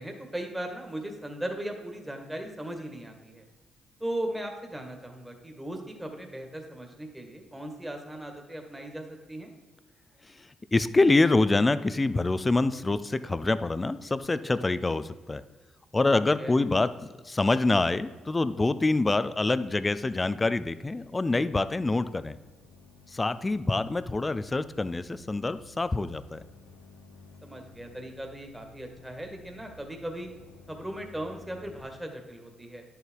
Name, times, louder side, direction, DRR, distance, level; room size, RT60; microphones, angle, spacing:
voice 1, 0.0-3.4 4.0-9.5 16.4-16.5 27.4-30.3 30.7-32.8, right 1 dB, 10° right, 3 dB, 2.0 m, -38 dB
voice 2, 10.3-15.4 15.9-16.9 17.2-22.4 23.1-26.4, left 2 dB, 25° left, 14 dB, 0.5 m, -26 dB
sound 1, 18.1-31.9, left 3 dB, 85° left, 1.1 m, -55 dB
10.5 x 6.8 x 4.7 m, 1.4 s
supercardioid pair, 60°, 0 cm